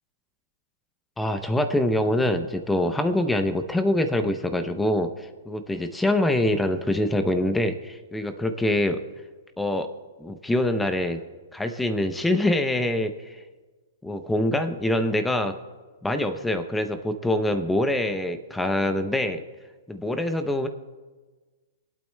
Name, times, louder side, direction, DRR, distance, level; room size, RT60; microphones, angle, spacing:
voice 1, 1.2-9.0 9.6-9.9 10.2-11.2 11.5-13.4 14.0-15.5 16.0-19.4 19.9-20.7, left 1 dB, 5° left, 8 dB, 0.6 m, -24 dB
26.0 x 8.8 x 2.2 m, 1.3 s
hypercardioid pair, 145°, 0 cm